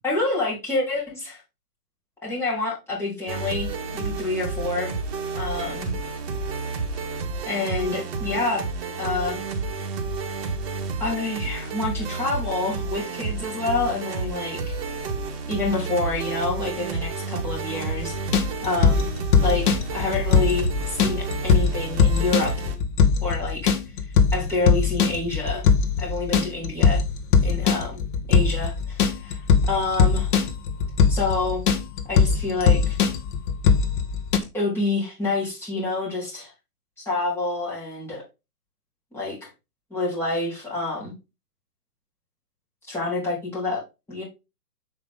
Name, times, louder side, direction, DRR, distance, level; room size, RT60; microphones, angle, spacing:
voice 1, 0.0-1.4 2.2-3.7 3.9-4.9 5.3-5.9 7.5-8.7 9.0-9.4 11.0-14.7 15.5-19.1 19.4-22.5 23.2-23.7 24.3-25.6 26.0-27.0 27.4-27.9 28.3-29.4 29.6-30.3 31.1-31.6 32.1-33.0 34.5-36.5 37.0-38.2 39.1-39.5 39.9-41.1 42.9-43.8 44.1-44.2, left 3 dB, 5° left, -7 dB, 3.8 m, -27 dB
sound 1, 3.3-22.8, right 4 dB, 40° right, 2.1 m, -30 dB
sound 2, 18.1-34.4, left 5 dB, 30° left, 1.2 m, -21 dB
7.8 x 5.2 x 3.7 m, 0.25 s
hypercardioid pair, 150°, 46 cm